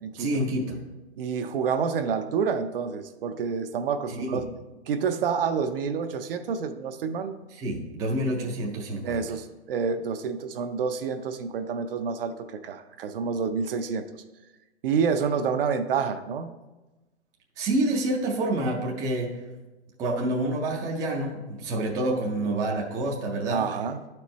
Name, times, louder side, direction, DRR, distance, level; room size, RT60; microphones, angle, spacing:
voice 1, 0.2-0.8 4.1-4.4 7.5-9.2 17.6-19.4 20.0-23.6, right 1 dB, 10° right, -1 dB, 0.4 m, -28 dB
voice 2, 1.2-4.5 4.9-7.4 9.0-14.2 14.8-16.5 23.5-24.0, right 6 dB, 55° right, 9 dB, 0.6 m, -28 dB
11.0 x 4.5 x 3.1 m, 1.1 s
hypercardioid pair, 135°, 34 cm